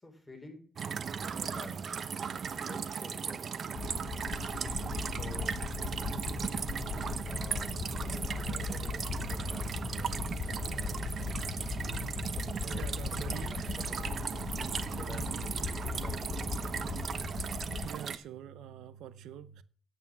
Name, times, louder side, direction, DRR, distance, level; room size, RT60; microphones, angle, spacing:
voice 1, 0.0-0.6 1.2-1.9 2.5-3.5 5.0-5.6 7.2-12.0 12.6-14.2 14.7-17.1, left 1 dB, 10° left, 4.1 m, -49 dB
sound 1, 0.8-18.2, right 6 dB, 50° right, 0.8 m, -37 dB
sound 2, 3.7-17.9, left 6 dB, 60° left, 0.8 m, -38 dB
voice 2, 12.6-13.9 15.1-15.5 17.8-19.6, right 9 dB, 85° right, 0.6 m, -46 dB
sound 3, 13.6-15.3, right 2 dB, 25° right, 5.2 m, -62 dB
9.5 x 8.7 x 6.1 m
cardioid pair, 90°, 0 cm